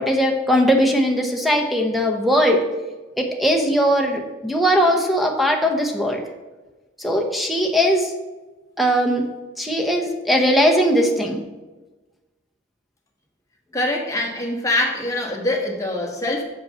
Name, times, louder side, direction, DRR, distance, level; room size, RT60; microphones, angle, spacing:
voice 1, 0.0-2.7 3.2-6.2 7.0-8.1 8.8-9.3 9.6-11.4, equal, ahead, 2 dB, 0.9 m, -19 dB
voice 2, 13.7-16.4, left 1 dB, 20° left, 0 dB, 1.2 m, -24 dB
6.9 x 5.3 x 5.5 m, 1.2 s
head